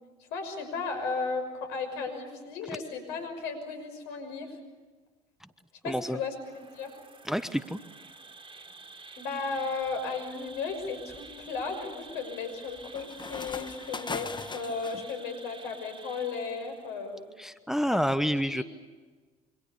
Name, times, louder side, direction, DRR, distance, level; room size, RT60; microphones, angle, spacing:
voice 1, 0.3-4.6 5.8-6.4 6.7-6.9 9.2-17.2 17.9-18.0 18.4-18.6, left 4 dB, 70° left, 6 dB, 6.2 m, -35 dB
voice 2, 5.9-6.2 7.2-7.8 17.4-18.6, equal, ahead, 12 dB, 1.2 m, -28 dB
Insect, 6.4-17.1, right 3 dB, 30° right, 4.3 m, -50 dB
sound 1, 9.6-9.9 10.5-15.1, left 4 dB, 25° left, 1.4 m, -41 dB
27.5 x 25.0 x 7.1 m, 1.3 s
hypercardioid pair, 55°, 19 cm